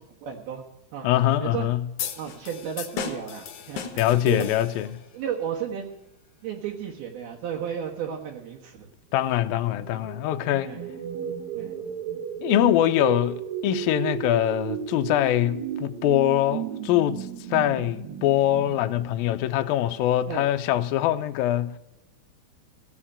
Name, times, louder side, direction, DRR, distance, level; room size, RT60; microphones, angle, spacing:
voice 1, 0.2-0.6 0.9-1.1 1.4-1.7 2.2-3.8 4.3-4.5 5.1-6.0 6.4-8.9 10.6-10.8 11.5-11.7 20.3-20.5, right 8 dB, 70° right, 3.1 m, -33 dB
voice 2, 1.0-1.8 4.0-4.9 9.1-10.7 12.4-21.8, left 12 dB, 80° left, 2.1 m, -23 dB
sound 1, 2.0-5.1, left 7 dB, 65° left, 2.2 m, -35 dB
sound 2, 9.1-13.1, right 8 dB, 50° right, 2.3 m, -42 dB
sound 3, 10.7-19.6, right 8 dB, 85° right, 3.7 m, -34 dB
15.5 x 7.4 x 8.6 m
omnidirectional pair, 4.7 m